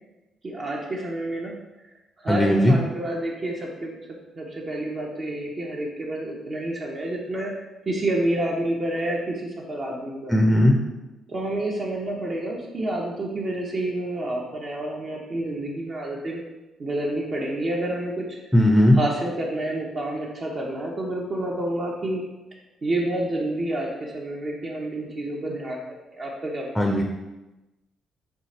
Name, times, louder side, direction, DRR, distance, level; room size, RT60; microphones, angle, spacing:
voice 1, 0.4-1.5 2.2-4.1 4.4-7.5 7.9-10.3 11.3-16.4 16.8-18.4 19.0-22.2 22.8-25.8 26.1-26.9, right 1 dB, 40° right, -3 dB, 0.8 m, -29 dB
voice 2, 2.3-2.8 10.3-10.8 18.5-19.0 26.8-27.0, left 1 dB, 5° left, 1 dB, 0.6 m, -17 dB
4.7 x 2.4 x 4.2 m, 1.0 s
cardioid pair, 90°, 0 cm